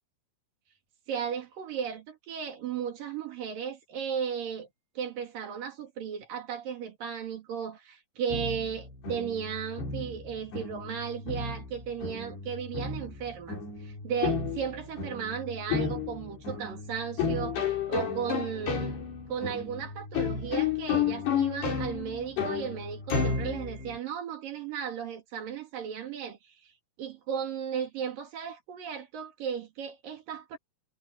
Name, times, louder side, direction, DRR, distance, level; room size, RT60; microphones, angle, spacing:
voice 1, 1.1-4.7 5.0-17.6 17.9-19.0 19.3-26.7 27.0-30.6, right 7 dB, 60° right, 3.7 m, -35 dB
sound 1, 8.3-24.0, left 6 dB, 70° left, 7.9 m, -32 dB
omnidirectional pair, 4.9 m